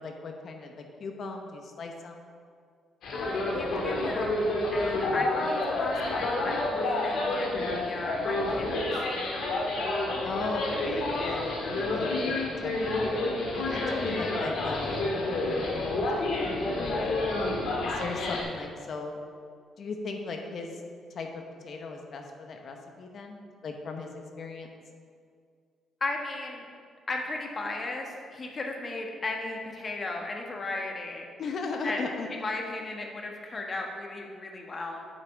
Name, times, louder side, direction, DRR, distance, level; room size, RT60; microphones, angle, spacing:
voice 1, 0.0-2.2 10.2-13.1 13.5-17.4 17.8-19.2 19.8-20.8 21.1-24.1 24.4-24.7 31.4-32.3, left 3 dB, 55° left, 3 dB, 1.0 m, -38 dB
sound 1, 3.0-18.4, left 2 dB, 75° left, 1.8 m, -29 dB
voice 2, 3.1-4.4 4.7-9.0 14.0-14.3 26.0-26.6 27.1-31.3 31.8-32.0 32.4-35.0, left 2 dB, 35° left, 1 dB, 1.3 m, -36 dB
8.4 x 5.8 x 4.8 m, 2.1 s
cardioid pair, 90°, 0 cm